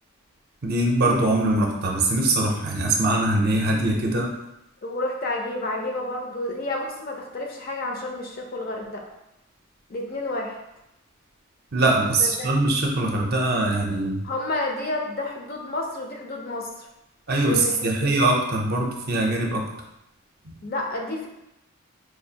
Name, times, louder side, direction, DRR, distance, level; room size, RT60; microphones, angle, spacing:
voice 1, 0.6-4.3 11.7-14.2 17.3-19.7 20.4-20.5, right 2 dB, 45° right, 0 dB, 0.5 m, -22 dB
voice 2, 4.8-9.0 9.9-10.6 12.2-12.5 14.2-16.9 17.4-17.9 20.6-21.3, left 2 dB, 40° left, 1 dB, 0.5 m, -30 dB
4.4 x 2.4 x 2.8 m, 0.88 s
head